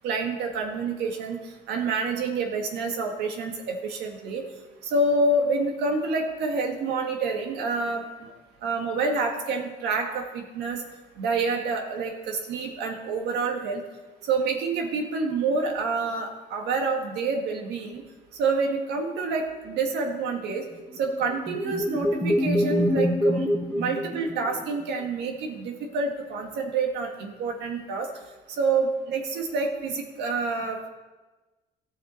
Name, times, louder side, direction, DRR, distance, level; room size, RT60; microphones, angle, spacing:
voice 1, 0.0-1.4 1.7-4.4 4.8-8.0 8.6-10.8 11.2-13.8 14.2-18.0 18.4-20.6 21.0-23.5 23.8-28.1 28.6-30.9, right 3 dB, 80° right, 3 dB, 1.8 m, -27 dB
sound 1, 20.8-24.9, equal, 5° left, 1.3 m, -26 dB
14.5 x 7.2 x 4.4 m, 1.2 s
cardioid pair, 110°, 17 cm